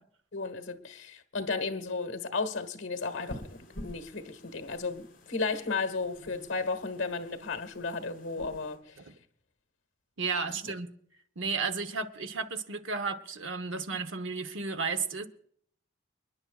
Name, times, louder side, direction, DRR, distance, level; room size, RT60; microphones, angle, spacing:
voice 1, 0.3-9.0 10.5-10.7, left 4 dB, 70° left, 1.4 m, -34 dB
sound 1, 3.0-8.8, left 1 dB, 45° left, 4.1 m, -49 dB
voice 2, 10.2-10.9 11.4-15.3, right 4 dB, 70° right, 0.9 m, -33 dB
29.0 x 10.5 x 2.4 m
head